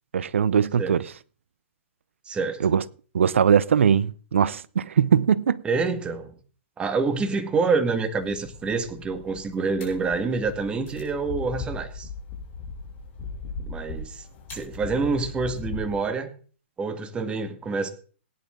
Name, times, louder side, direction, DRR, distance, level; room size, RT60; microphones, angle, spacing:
voice 1, 0.1-1.1 2.6-2.8 3.1-5.6, right 7 dB, 80° right, 0.8 m, -21 dB
voice 2, 2.3-2.7 5.6-6.3 6.8-12.1 13.7-14.2 14.5-16.3 16.8-17.9, right 4 dB, 15° right, 1.9 m, -27 dB
sound 1, 8.2-16.1, left 3 dB, 30° left, 5.9 m, -38 dB
17.5 x 10.5 x 3.8 m
hypercardioid pair, 135°, 7 cm